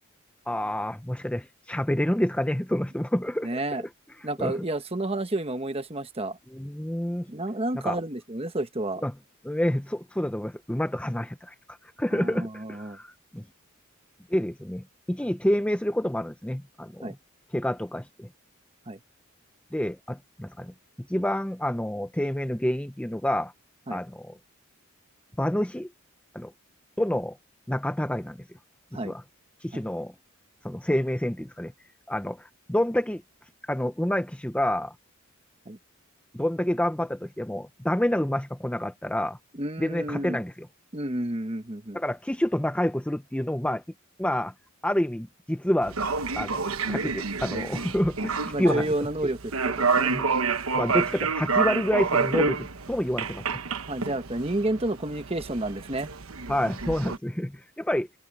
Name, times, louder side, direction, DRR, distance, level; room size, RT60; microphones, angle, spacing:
voice 1, 0.5-3.5 3.8-3.9 4.4-4.5 6.5-7.3 7.8-8.0 9.0-9.1 9.4-11.5 12.0-13.4 14.3-17.1 17.5-18.3 19.7-20.7 21.1-23.5 23.9-24.4 25.4-25.9 26.3-26.5 27.0-27.4 27.7-28.4 28.9-29.2 29.6-30.1 30.6-31.7 32.1-33.2 33.7-34.9 36.3-39.4 39.8-40.7 41.9-43.8 44.2-44.5 44.8-46.0 46.4-46.6 46.9-48.9 50.0-50.3 50.7-53.6 56.5-58.1, left 1 dB, 5° left, 0.6 m, -28 dB
voice 2, 3.4-3.8 4.2-6.4 7.3-9.0 12.1-13.0 17.0-17.1 18.9-19.0 23.9-24.0 28.9-29.2 29.7-29.8 35.7-35.8 39.5-40.4 40.9-42.0 48.5-50.1 53.9-56.1, right 1 dB, 25° right, 1.2 m, -30 dB
sound 1, 45.8-57.2, right 4 dB, 80° right, 1.2 m, -29 dB
head